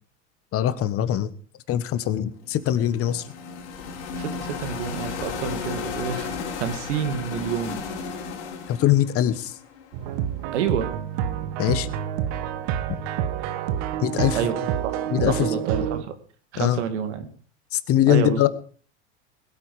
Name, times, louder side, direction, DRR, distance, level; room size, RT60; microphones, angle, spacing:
voice 1, 0.5-1.3 1.7-3.2 8.7-9.5 11.6-11.9 14.0-14.4 15.1-15.5 16.6-16.8 17.7-18.5, left 12 dB, 40° left, 14 dB, 1.4 m, -22 dB
sound 1, 2.4-10.4, left 5 dB, 85° left, 4.2 m, -34 dB
voice 2, 4.1-7.8 10.5-10.9 14.3-14.6 14.8-14.9 15.2-16.1 16.5-17.3 18.1-18.5, right 8 dB, 85° right, 9 dB, 2.4 m, -28 dB
sound 2, 9.9-16.0, right 10 dB, 65° right, 1.5 m, -28 dB
21.0 x 8.7 x 5.0 m, 0.42 s
supercardioid pair, 110°, 34 cm